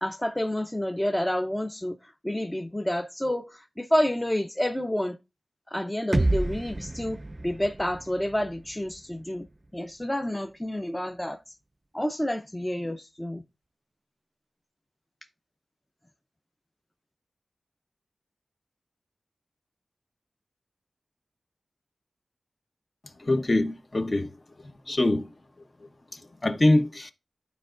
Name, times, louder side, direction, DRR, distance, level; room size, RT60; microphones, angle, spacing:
voice 1, 0.0-5.2 5.7-9.5 9.7-11.4 11.9-13.4, left 1 dB, 10° left, 0.6 m, -29 dB
sound 1, 6.1-10.0, right 2 dB, 30° right, 0.4 m, -31 dB
voice 2, 23.2-24.3 24.9-25.3 26.1-27.1, left 2 dB, 40° left, 0.9 m, -24 dB
12.0 x 4.6 x 2.5 m
wide cardioid pair, 70°, 0 cm